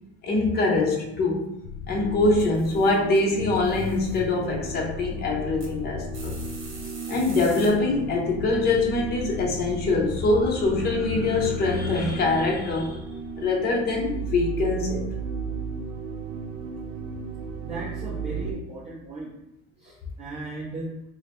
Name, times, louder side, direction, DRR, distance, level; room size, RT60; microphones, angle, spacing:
voice 1, 0.2-1.5 1.9-6.4 7.1-13.0 13.4-15.0, left 2 dB, 25° left, 0 dB, 0.6 m, -24 dB
sound 1, 1.6-15.7, left 5 dB, 80° left, 0.6 m, -38 dB
sound 2, 1.9-18.5, right 5 dB, 70° right, 0.7 m, -36 dB
sound 3, 2.4-3.2 3.5-4.2 5.6-5.7 6.1-7.7, right 3 dB, 35° right, 1.1 m, -44 dB
voice 2, 17.6-19.3 19.8-20.9, right 2 dB, 20° right, -6 dB, 0.5 m, -36 dB
4.5 x 2.0 x 3.0 m, 0.82 s
cardioid pair, 170°, 36 cm